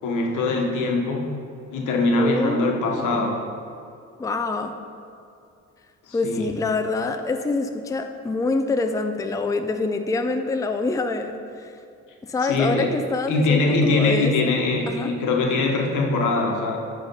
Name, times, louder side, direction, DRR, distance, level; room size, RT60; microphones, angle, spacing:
voice 1, 0.0-1.3 1.7-3.4 6.1-6.5 12.5-12.9 13.3-16.8, left 3 dB, 80° left, 1 dB, 1.2 m, -22 dB
voice 2, 2.2-3.3 4.2-4.8 6.1-11.7 12.2-14.5 14.9-15.1, left 3 dB, 10° left, 6 dB, 0.4 m, -26 dB
9.6 x 3.3 x 5.5 m, 2.5 s
cardioid pair, 90°, 30 cm